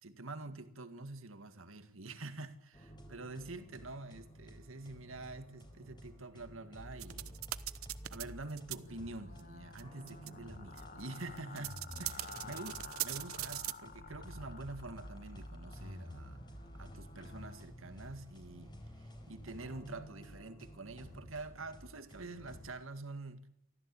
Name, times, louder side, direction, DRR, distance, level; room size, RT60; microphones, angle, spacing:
voice 1, 0.0-7.4 8.1-16.4 16.7-23.5, right 2 dB, 70° right, 2.0 m, -47 dB
sound 1, 2.7-22.7, equal, 20° left, 4.3 m, -51 dB
sound 2, 7.0-8.2 8.5-8.8 9.4-9.5 9.8-9.9 10.1-10.3 10.8-13.7, right 15 dB, 90° right, 0.9 m, -40 dB
sound 3, 8.8-17.7, left 4 dB, 45° left, 1.7 m, -53 dB
24.0 x 15.0 x 8.6 m
head